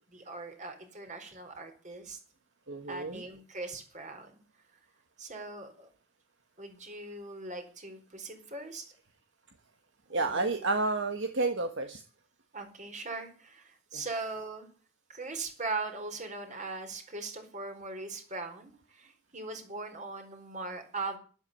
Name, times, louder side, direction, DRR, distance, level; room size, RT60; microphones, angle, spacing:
voice 1, 0.1-2.2 2.9-4.3 5.2-5.9 6.6-8.9 10.1-10.5 12.5-14.7 15.1-21.2, right 3 dB, 35° right, 5 dB, 4.4 m, -40 dB
voice 2, 2.7-3.2 10.1-12.0 13.9-14.0, right 3 dB, 60° right, 6 dB, 1.4 m, -30 dB
12.5 x 11.5 x 8.4 m, 0.40 s
head